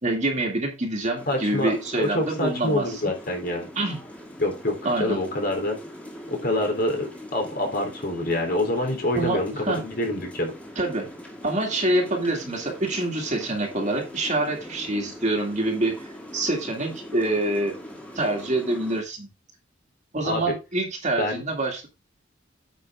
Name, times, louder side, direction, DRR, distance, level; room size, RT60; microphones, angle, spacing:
voice 1, 0.0-3.1 3.8-4.0 4.8-5.2 9.1-9.8 10.8-11.1 11.4-17.7 18.1-19.3 20.1-21.9, right 2 dB, 40° right, 0 dB, 2.3 m, -26 dB
sound 1, 1.2-19.0, equal, 5° left, 2.1 m, -42 dB
voice 2, 1.3-3.7 4.4-5.8 6.3-10.5 20.2-20.5 21.2-21.4, left 1 dB, 50° left, 2 dB, 3.5 m, -26 dB
9.0 x 6.2 x 3.6 m, 0.27 s
head